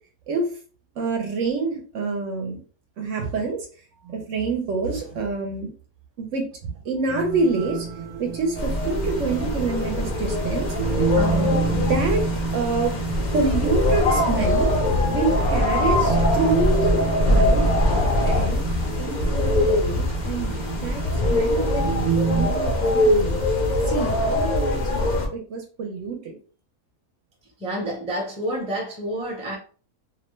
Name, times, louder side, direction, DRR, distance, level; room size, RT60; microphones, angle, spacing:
voice 1, 1.0-2.6 3.0-3.6 4.0-5.7 6.2-6.5 6.8-7.9 8.2-10.7 11.7-12.2 12.5-12.9 13.3-14.7 15.1-17.0 17.3-17.7 18.2-18.7 19.0-21.0 21.3-21.9 22.3-23.4 23.9-25.0 25.3-26.4, right 3 dB, 65° right, 0.9 m, -26 dB
sound 1, 7.1-22.5, right 6 dB, 85° right, 0.3 m, -30 dB
sound 2, 8.5-25.3, left 1 dB, 55° left, 0.5 m, -22 dB
voice 2, 11.1-11.6 27.6-29.6, equal, 5° right, 0.5 m, -29 dB
2.7 x 2.1 x 3.0 m
omnidirectional pair, 1.5 m